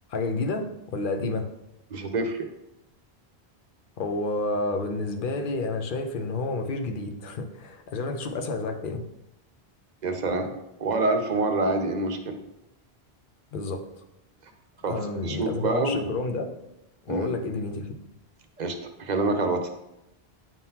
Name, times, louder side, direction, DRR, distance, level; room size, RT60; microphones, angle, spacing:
voice 1, 0.1-1.5 4.0-9.0 13.5-13.8 14.9-16.5 17.1-17.9, left 3 dB, 55° left, 5 dB, 0.8 m, -30 dB
voice 2, 1.9-2.4 10.0-10.5 10.8-12.4 14.4-14.5 14.8-16.1 17.1-17.3 18.6-19.7, right 3 dB, 50° right, 5 dB, 0.7 m, -27 dB
9.0 x 3.8 x 2.8 m, 0.89 s
omnidirectional pair, 1.1 m